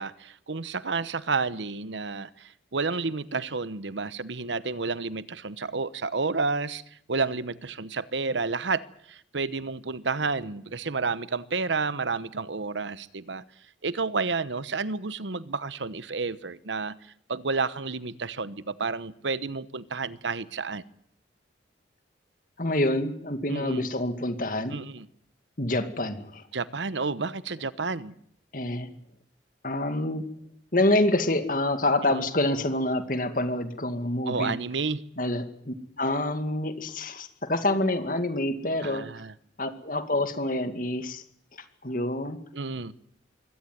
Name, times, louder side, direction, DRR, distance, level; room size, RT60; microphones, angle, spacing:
voice 1, 0.0-6.8 7.1-13.4 13.8-20.8 23.5-23.9 24.7-25.1 26.5-28.1 32.0-32.2 34.3-35.0 38.8-39.3 42.5-42.9, right 4 dB, 80° right, 16 dB, 1.0 m, -30 dB
voice 2, 22.6-24.8 25.6-26.4 28.5-28.9 29.6-30.2 30.7-34.6 35.2-39.1 39.6-41.2 41.8-42.4, left 1 dB, 45° left, 9 dB, 2.2 m, -27 dB
23.5 x 17.0 x 9.4 m, 0.69 s
head